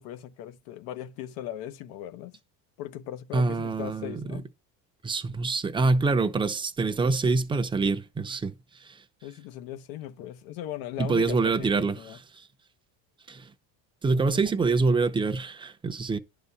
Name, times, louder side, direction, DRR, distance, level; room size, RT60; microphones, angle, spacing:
voice 1, 0.0-2.4 2.8-4.5 9.2-12.2 14.1-14.4, left 12 dB, 85° left, 1.1 m, -39 dB
voice 2, 3.3-4.4 5.0-8.5 8.9-9.0 11.0-12.2 13.3-13.5 14.0-16.2, right 3 dB, 15° right, 0.7 m, -25 dB
11.0 x 4.1 x 6.9 m
cardioid pair, 140°, 37 cm